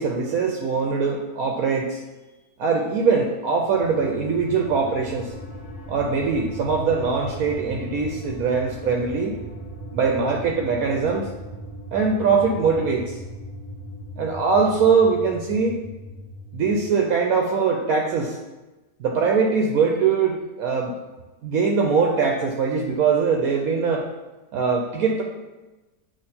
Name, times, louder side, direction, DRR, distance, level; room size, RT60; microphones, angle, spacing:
voice 1, 0.0-2.0 2.6-5.3 5.9-9.4 9.9-11.3 11.9-13.2 14.2-15.8 16.5-18.4 19.0-20.9 21.4-24.1 24.5-25.2, right 5 dB, 75° right, 1 dB, 1.1 m, -22 dB
sound 1, 3.6-16.8, equal, ahead, 1.3 m, -38 dB
8.5 x 2.9 x 4.2 m, 1.1 s
omnidirectional pair, 1.6 m